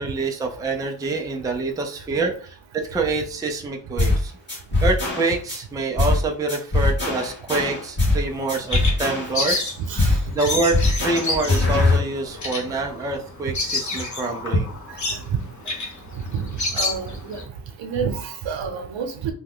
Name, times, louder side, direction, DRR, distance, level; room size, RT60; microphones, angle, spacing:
voice 1, 0.0-4.3 4.8-9.7 10.3-14.7, right 3 dB, 10° right, 0.3 m, -26 dB
sound 1, 4.0-4.2 4.5-5.6 6.0-6.2 6.5-8.2 8.5-9.6 10.0-10.2 10.5-12.0, left 2 dB, 25° left, 1.1 m, -21 dB
Bird vocalization bird call bird song, 8.2-17.4, left 2 dB, 40° left, 0.8 m, -28 dB
voice 2, 16.3-17.4 17.8-19.3, right 6 dB, 80° right, 0.8 m, -28 dB
2.9 x 2.2 x 3.6 m
wide cardioid pair, 135°, 45 cm